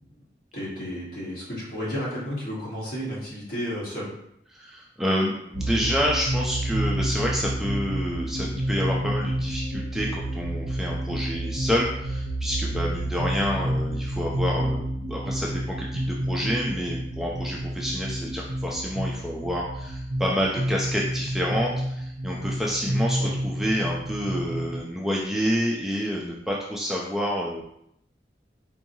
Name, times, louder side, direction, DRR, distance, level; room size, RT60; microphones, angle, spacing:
voice 1, 0.5-4.1 23.2-23.3, equal, 50° left, -6 dB, 1.4 m, -32 dB
voice 2, 4.5-27.6, equal, ahead, -3 dB, 0.3 m, -28 dB
sound 1, 5.5-24.8, right 1 dB, 70° right, 0.6 m, -29 dB
4.5 x 2.8 x 2.7 m, 0.76 s
head